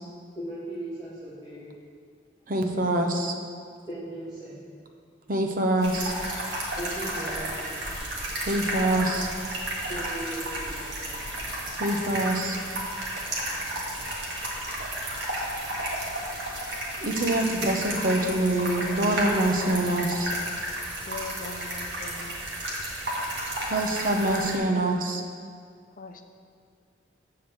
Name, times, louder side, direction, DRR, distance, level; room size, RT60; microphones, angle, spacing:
voice 1, 0.3-1.7 3.9-4.6 6.8-7.9 9.9-11.8 13.4-13.9, right 1 dB, 20° right, -14 dB, 2.5 m, -39 dB
voice 2, 2.5-3.3 5.3-6.1 8.5-9.3 11.8-12.6 17.0-20.3 23.6-25.2, right 1 dB, 50° right, 3 dB, 0.8 m, -25 dB
sound 1, 5.8-24.6, right 1 dB, 70° right, 1.7 m, -32 dB
voice 3, 21.0-22.5 26.0-26.2, left 3 dB, 45° left, 5 dB, 0.6 m, -41 dB
8.1 x 4.7 x 7.1 m, 2.1 s
head